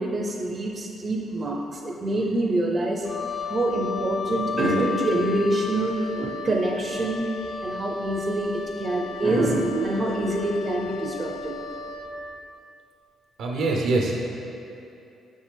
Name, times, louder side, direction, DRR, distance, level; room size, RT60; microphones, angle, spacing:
voice 1, 0.0-3.1 3.5-7.3 7.6-11.5, right 1 dB, 35° right, -1 dB, 0.6 m, -25 dB
Wind instrument woodwind instrument, 3.0-12.1, left 5 dB, 40° left, 0.7 m, -34 dB
voice 2, 13.4-14.2, right 2 dB, 75° right, 0 dB, 0.9 m, -24 dB
5.9 x 5.3 x 3.4 m, 2.6 s
cardioid pair, 90°, 0 cm